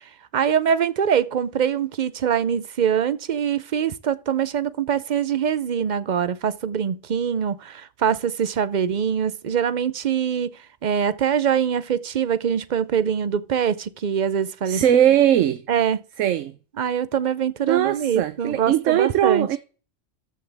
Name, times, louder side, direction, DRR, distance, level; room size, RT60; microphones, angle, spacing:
voice 1, 0.0-10.5 10.8-14.8 15.7-16.0 16.8-19.5, right 8 dB, 55° right, 0.5 m, -23 dB
voice 2, 14.7-15.6 16.2-16.5 17.7-19.6, right 11 dB, 85° right, 1.0 m, -20 dB
13.5 x 6.0 x 3.4 m
omnidirectional pair, 1.3 m